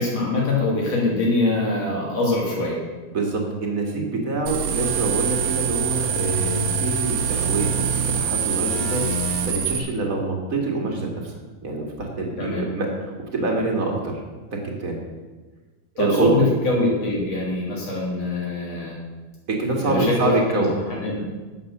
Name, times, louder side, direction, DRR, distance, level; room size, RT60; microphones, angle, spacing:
voice 1, 0.0-2.8 12.4-12.6 16.0-19.0 19.8-20.7 20.9-21.4, left 2 dB, 55° left, -3 dB, 4.2 m, -23 dB
voice 2, 3.1-9.2 9.4-11.3 11.6-14.2 14.5-15.0 16.0-16.5 19.5-20.7, right 2 dB, 30° right, 0 dB, 2.1 m, -25 dB
sound 1, 4.5-9.8, right 6 dB, 65° right, 2.0 m, -24 dB
11.5 x 7.8 x 6.8 m, 1.3 s
omnidirectional pair, 3.4 m